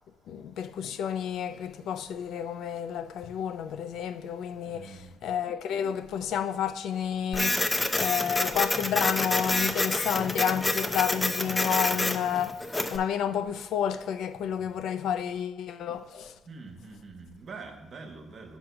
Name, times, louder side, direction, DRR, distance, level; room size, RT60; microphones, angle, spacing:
voice 1, 0.3-12.6 12.9-16.3, left 8 dB, 80° left, 0.4 m, -30 dB
voice 2, 4.6-5.2 14.6-14.7 16.5-18.6, right 4 dB, 55° right, 1.2 m, -45 dB
Printer, 7.3-13.0, left 2 dB, 15° left, 0.6 m, -28 dB
6.1 x 4.5 x 6.2 m
cardioid pair, 90°, 0 cm